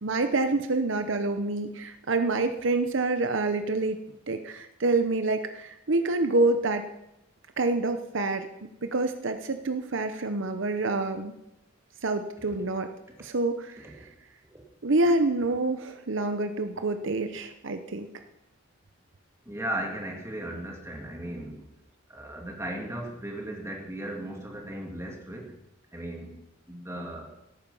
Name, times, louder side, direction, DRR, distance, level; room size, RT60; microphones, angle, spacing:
voice 1, 0.0-4.0 4.3-6.8 7.6-11.3 12.0-12.9 13.2-14.1 14.8-18.1, right 2 dB, 65° right, 8 dB, 0.8 m, -27 dB
voice 2, 19.5-21.7 22.1-25.6 25.9-26.3 26.7-27.3, right 1 dB, 15° right, 0 dB, 2.2 m, -36 dB
17.0 x 9.3 x 5.5 m, 0.90 s
head